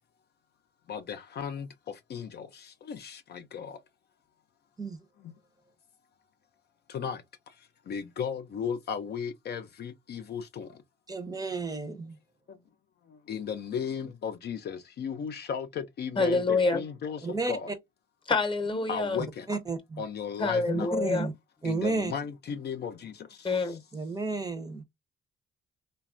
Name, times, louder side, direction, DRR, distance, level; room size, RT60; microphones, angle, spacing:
voice 1, 0.9-1.7 2.1-3.8 6.9-7.2 7.9-10.7 13.3-17.7 18.9-19.5 20.0-21.0 21.6-23.5, left 7 dB, 55° left, 0.5 m, -35 dB
voice 2, 11.1-12.2 17.2-17.8 19.5-20.0 20.7-21.3 21.6-22.1 23.9-24.8, right 3 dB, 20° right, 0.6 m, -32 dB
voice 3, 16.2-16.8 18.3-19.2 20.4-21.3 23.4-23.8, left 3 dB, 25° left, 0.8 m, -26 dB
3.1 x 2.3 x 2.4 m
cardioid pair, 90°, 20 cm